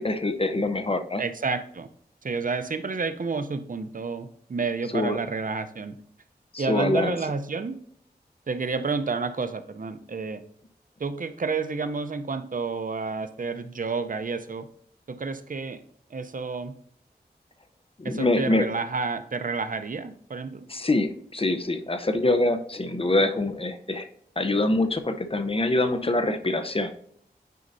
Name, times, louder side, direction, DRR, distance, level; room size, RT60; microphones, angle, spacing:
voice 1, 0.0-1.2 4.9-5.2 6.5-7.2 18.0-18.7 20.7-24.1 24.4-26.9, left 2 dB, 35° left, 8 dB, 0.7 m, -25 dB
voice 2, 1.2-1.9 2.2-5.9 6.6-7.8 8.5-10.4 11.0-14.7 15.1-15.8 16.1-16.7 18.0-20.7, right 4 dB, 55° right, 10 dB, 0.6 m, -30 dB
9.2 x 5.3 x 2.6 m, 0.66 s
wide cardioid pair, 55°, 17 cm